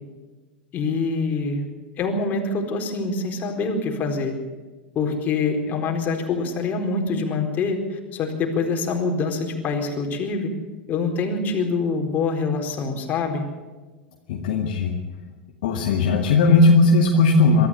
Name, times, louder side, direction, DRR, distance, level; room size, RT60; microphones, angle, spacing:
voice 1, 0.7-1.6 2.0-4.3 4.9-10.5 10.9-13.4, left 4 dB, 35° left, 3 dB, 4.4 m, -25 dB
voice 2, 14.3-15.0 15.6-17.7, left 3 dB, 55° left, 1 dB, 2.2 m, -17 dB
23.5 x 13.5 x 8.4 m, 1.3 s
figure-of-eight pair, 85°, 5 cm